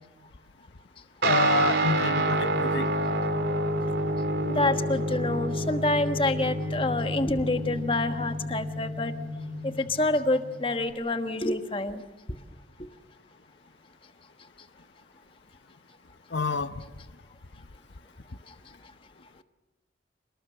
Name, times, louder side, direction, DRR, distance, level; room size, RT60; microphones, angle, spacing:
voice 1, 1.2-3.0 16.3-16.7, left 3 dB, 85° left, 11 dB, 0.8 m, -28 dB
Guitar, 1.2-10.9, right 1 dB, 75° right, 2.8 m, -29 dB
voice 2, 4.4-9.1 9.8-12.0, left 2 dB, 30° left, 8 dB, 1.3 m, -27 dB
28.0 x 19.5 x 7.8 m, 1.1 s
head